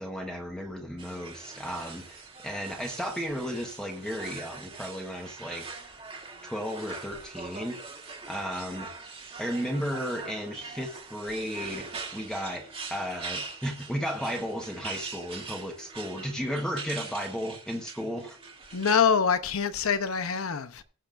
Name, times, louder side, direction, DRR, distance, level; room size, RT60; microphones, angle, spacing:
voice 1, 0.0-5.7 6.4-7.8 8.3-8.9 9.4-18.4, equal, 5° left, 1.2 m, -34 dB
sound 1, 1.0-19.0, right 4 dB, 25° right, 1.8 m, -42 dB
voice 2, 18.7-20.8, left 6 dB, 80° left, 0.8 m, -25 dB
19.5 x 7.0 x 2.6 m
head